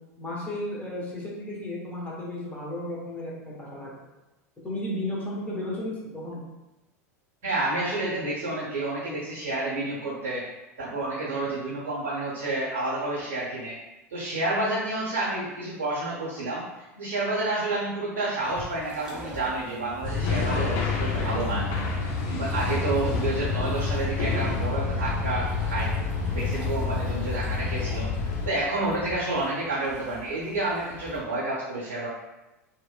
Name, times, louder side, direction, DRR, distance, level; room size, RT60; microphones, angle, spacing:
voice 1, 0.2-3.9 4.6-6.4, left 1 dB, 20° left, -6 dB, 1.0 m, -34 dB
voice 2, 7.4-10.4 10.8-13.8 14.1-21.8 22.3-25.9 26.3-28.1 28.4-32.1, right 2 dB, 65° right, -8 dB, 0.9 m, -29 dB
sound 1, 18.4-31.2, equal, 10° right, 0.6 m, -44 dB
sound 2, 20.0-28.5, left 4 dB, 50° left, 0.4 m, -28 dB
2.9 x 2.0 x 2.3 m, 1.0 s
figure-of-eight pair, 85°, 8 cm